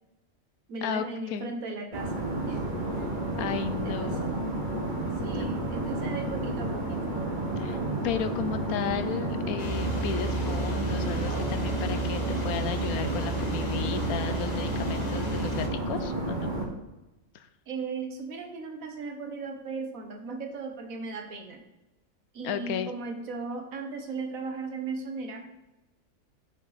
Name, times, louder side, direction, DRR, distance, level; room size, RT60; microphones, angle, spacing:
voice 1, 0.7-2.6 3.8-4.4 5.2-7.2 17.7-21.6 22.3-25.5, right 4 dB, 70° right, 4 dB, 1.5 m, -37 dB
sound 1, 1.9-16.6, right 2 dB, 35° right, 1.6 m, -31 dB
voice 2, 3.4-4.5 7.6-16.5 17.3-17.5 22.4-22.9, left 8 dB, 85° left, 11 dB, 1.1 m, -34 dB
sound 2, 9.6-15.7, right 2 dB, 35° left, 1.0 m, -33 dB
6.5 x 6.4 x 4.0 m, 1.0 s
omnidirectional pair, 1.5 m